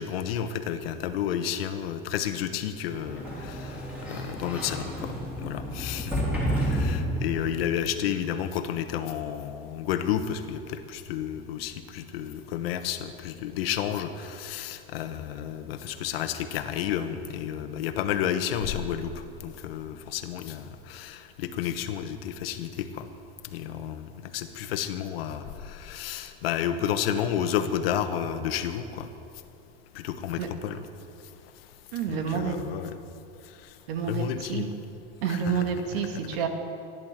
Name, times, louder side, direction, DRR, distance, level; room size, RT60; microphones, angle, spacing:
voice 1, 0.0-3.8 4.1-6.2 6.6-23.1 23.5-29.1 29.9-30.8 32.1-33.0 34.0-34.8 35.3-35.6, left 9 dB, 85° left, 9 dB, 1.2 m, -31 dB
Sliding door, 2.9-7.7, equal, 5° right, 3.7 m, -30 dB
voice 2, 31.9-32.6 33.9-34.7 35.2-36.5, right 7 dB, 80° right, 5 dB, 2.0 m, -29 dB
14.5 x 10.5 x 7.5 m, 2.6 s
supercardioid pair, 140°, 29 cm